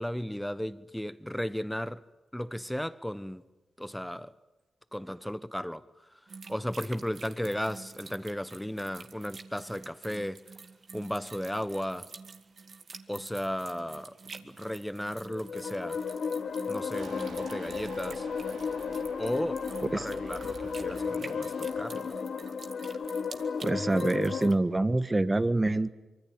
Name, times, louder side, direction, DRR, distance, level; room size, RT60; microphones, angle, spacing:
voice 1, 0.0-2.0 2.3-3.4 3.8-4.3 4.9-6.2 6.5-10.4 10.9-12.1 13.1-14.2 14.4-16.0 16.7-18.3 19.1-19.6 19.9-22.1, equal, 5° left, 1.2 m, -35 dB
sound 1, 6.3-24.6, right 4 dB, 60° right, 2.0 m, -48 dB
sound 2, 15.1-24.5, left 6 dB, 60° left, 1.0 m, -34 dB
sound 3, 16.9-22.0, right 5 dB, 85° right, 2.7 m, -49 dB
voice 2, 23.6-25.9, right 2 dB, 25° right, 1.5 m, -26 dB
24.5 x 24.0 x 8.9 m
supercardioid pair, 40°, 0 cm